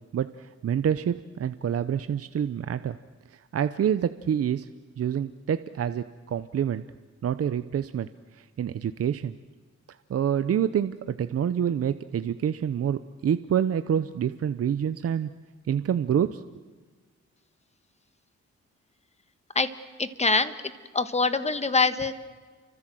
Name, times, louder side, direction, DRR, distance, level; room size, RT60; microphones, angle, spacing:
voice 1, 0.1-3.0 3.3-4.7 5.0-6.8 7.2-9.3 10.1-15.3 15.7-16.4, right 9 dB, 55° right, 11 dB, 0.8 m, -27 dB
voice 2, 20.0-20.5 20.9-22.1, left 4 dB, 20° left, 11 dB, 1.4 m, -24 dB
29.0 x 25.0 x 7.7 m, 1.4 s
wide cardioid pair, 135°, 29 cm